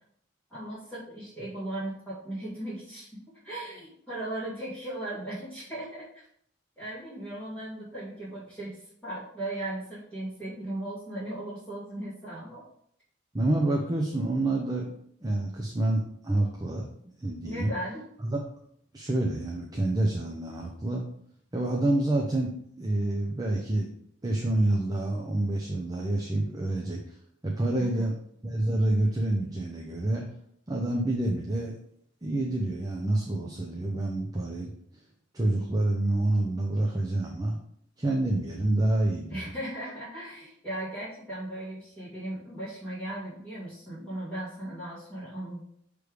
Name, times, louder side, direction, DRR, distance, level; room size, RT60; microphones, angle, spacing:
voice 1, 0.5-6.3 6.8-12.6 17.4-18.1 27.7-28.1 39.3-45.6, right 1 dB, 5° left, -12 dB, 2.4 m, -37 dB
voice 2, 13.3-14.9 15.2-16.9 17.2-17.7 18.2-18.4 18.9-21.0 21.5-23.9 24.2-27.2 27.4-28.2 28.4-30.2 30.7-31.7 32.2-34.7 35.3-37.6 38.0-39.5, right 1 dB, 20° right, -1 dB, 0.7 m, -27 dB
6.4 x 3.4 x 5.0 m, 0.66 s
head